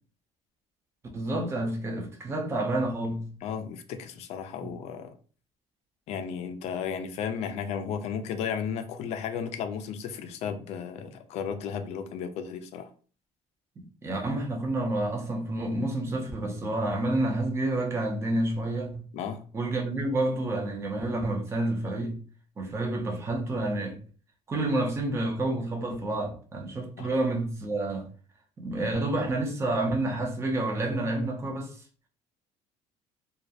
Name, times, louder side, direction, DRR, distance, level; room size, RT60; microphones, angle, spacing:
voice 1, 1.1-3.3 4.6-4.7 14.0-19.0 19.5-22.2 22.6-24.0 24.5-28.1 28.6-31.7, right 2 dB, 20° right, 0.5 m, -29 dB
voice 2, 3.4-5.1 6.1-12.9 19.1-19.4 27.0-27.1, left 7 dB, 55° left, 0.4 m, -34 dB
2.3 x 2.0 x 2.6 m
cardioid pair, 150°, 13 cm